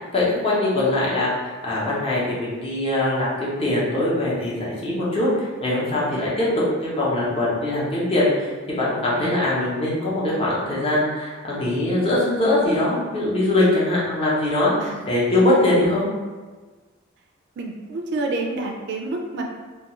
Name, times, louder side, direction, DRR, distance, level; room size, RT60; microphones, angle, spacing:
voice 1, 0.1-16.0, left 1 dB, 30° left, -7 dB, 0.7 m, -22 dB
voice 2, 17.6-19.4, right 2 dB, 55° right, 1 dB, 0.3 m, -28 dB
2.3 x 2.2 x 2.9 m, 1.3 s
head